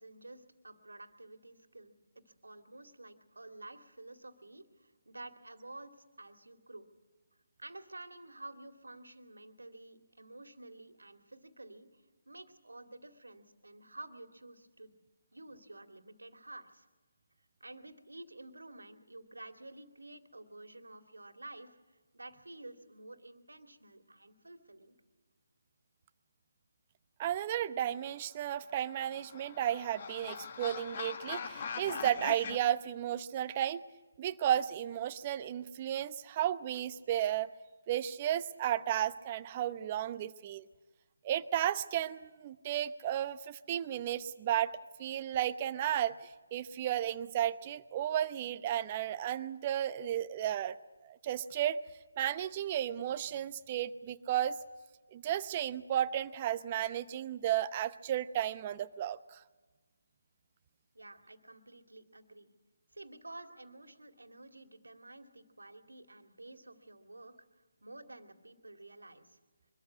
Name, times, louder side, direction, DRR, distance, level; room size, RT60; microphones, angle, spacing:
voice 1, 0.0-1.9 2.2-6.9 7.6-15.0 15.3-16.9 17.6-25.0 60.9-62.5 62.9-67.4 67.8-69.4, right 2 dB, 85° right, 7 dB, 2.3 m, -51 dB
voice 2, 27.2-33.8 34.2-37.5 37.9-40.7 41.2-50.7 51.0-51.8 52.2-54.6 55.1-59.4, right 11 dB, 25° right, 13 dB, 0.8 m, -33 dB
sound 1, 28.7-32.6, left 6 dB, 40° left, 1.2 m, -42 dB
23.5 x 13.5 x 9.4 m, 1.3 s
figure-of-eight pair, 155°, 0 cm